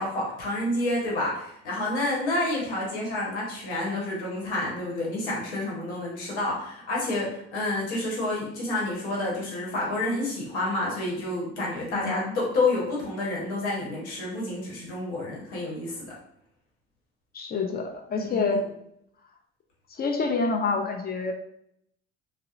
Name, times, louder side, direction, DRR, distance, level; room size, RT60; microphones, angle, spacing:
voice 1, 0.0-16.1 18.2-18.4, left 2 dB, 85° left, -4 dB, 1.0 m, -29 dB
voice 2, 12.0-12.4 17.3-18.6 19.9-21.3, left 4 dB, 30° left, 4 dB, 0.5 m, -27 dB
2.8 x 2.0 x 2.4 m, 0.74 s
hypercardioid pair, 65°, 32 cm